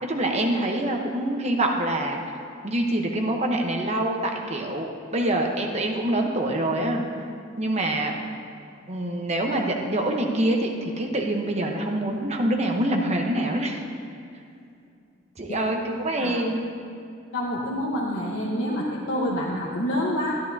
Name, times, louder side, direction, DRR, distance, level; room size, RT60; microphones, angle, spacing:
voice 1, 0.0-7.0 7.6-8.2 8.9-13.8 15.4-16.7, right 1 dB, 35° right, 2 dB, 0.9 m, -25 dB
voice 2, 17.3-20.4, equal, 65° left, -4 dB, 1.1 m, -27 dB
12.5 x 12.5 x 2.7 m, 2.4 s
head